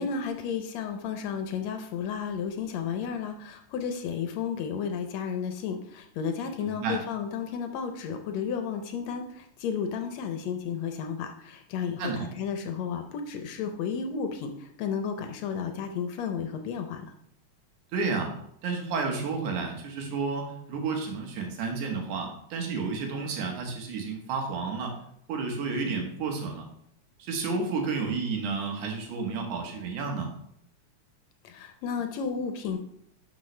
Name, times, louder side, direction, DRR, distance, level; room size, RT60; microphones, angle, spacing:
voice 1, 0.0-17.1 31.4-32.8, left 6 dB, 75° left, 6 dB, 1.8 m, -33 dB
voice 2, 6.6-7.0 12.0-12.3 17.9-18.3 18.6-25.0 25.3-26.7 27.2-30.3, right 4 dB, 85° right, 3 dB, 2.8 m, -31 dB
12.0 x 5.5 x 3.2 m, 0.72 s
omnidirectional pair, 3.4 m